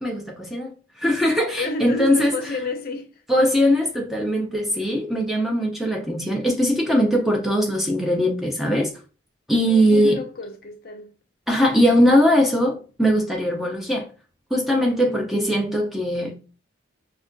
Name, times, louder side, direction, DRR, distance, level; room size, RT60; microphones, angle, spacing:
voice 1, 0.0-2.4 3.3-8.9 9.5-10.2 11.5-14.1 14.5-16.4, equal, ahead, 0.4 m, -20 dB
voice 2, 1.6-3.2 9.7-11.1 14.8-15.3, left 2 dB, 45° left, 0.5 m, -31 dB
5.3 x 2.2 x 2.5 m
head